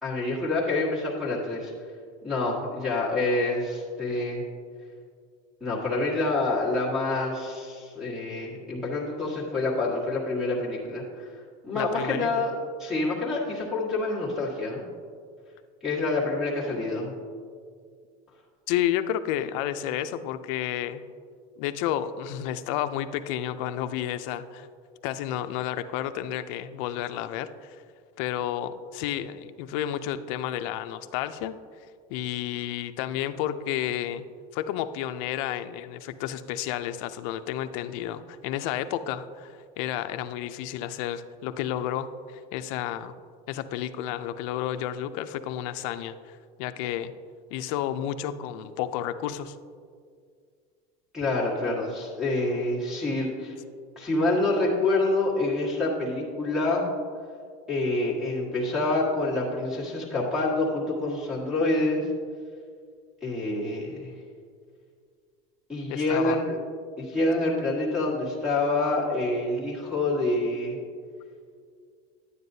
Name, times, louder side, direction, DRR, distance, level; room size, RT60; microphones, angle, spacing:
voice 1, 0.0-1.7 2.2-4.4 5.6-11.3 11.6-12.5 12.8-14.8 15.8-17.1 51.1-53.5 53.9-56.9 57.7-62.0 63.2-64.1 65.7-66.6 67.0-70.8, left 2 dB, 5° right, -4 dB, 1.5 m, -27 dB
voice 2, 11.7-12.5 18.7-21.0 21.6-24.7 25.0-27.8 28.2-31.6 32.1-34.3 34.5-43.1 43.5-47.1 47.5-49.6 65.9-66.4, left 11 dB, 60° left, 10 dB, 0.4 m, -31 dB
9.9 x 9.4 x 2.7 m, 2.1 s
cardioid pair, 170°, 19 cm